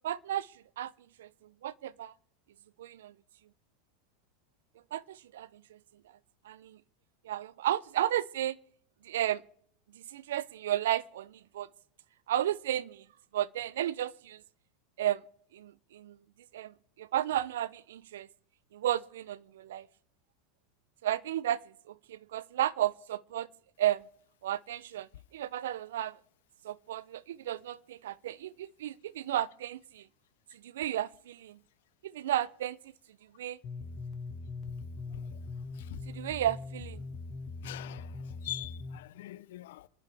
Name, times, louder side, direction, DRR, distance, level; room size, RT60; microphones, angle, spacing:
voice 1, 0.0-0.5 0.8-0.9 1.2-1.3 1.6-2.1 2.8-3.1 4.9-5.8 6.4-6.8 7.2-8.6 9.0-9.4 9.9-11.7 12.3-13.0 13.3-14.4 15.0-15.2 15.5-16.2 16.5-18.3 18.7-19.9 21.0-21.6 21.9-23.5 23.8-24.0 24.4-26.2 26.6-30.0 30.6-31.6 32.0-32.8 33.4-33.6 36.1-37.0, right 12 dB, 90° right, 0.5 m, -33 dB
sound 1, 33.6-39.0, left 3 dB, 35° left, 1.6 m, -41 dB
voice 2, 35.1-35.4 35.7-36.0 37.6-39.9, left 14 dB, 80° left, 0.6 m, -44 dB
26.5 x 10.5 x 3.4 m
supercardioid pair, 140°, 0 cm